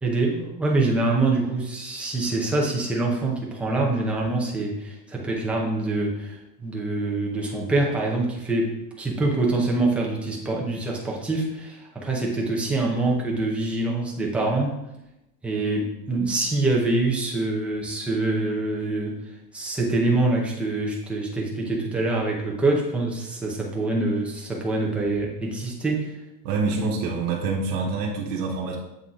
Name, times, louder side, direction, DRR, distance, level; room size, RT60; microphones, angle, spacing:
voice 1, 0.0-14.8 15.4-19.1 19.5-26.1 26.8-26.9, right 2 dB, ahead, -3 dB, 0.6 m, -25 dB
voice 2, 26.4-28.8, right 4 dB, 65° right, -1 dB, 1.2 m, -26 dB
7.6 x 3.6 x 4.0 m, 0.91 s
supercardioid pair, 160°, 50 cm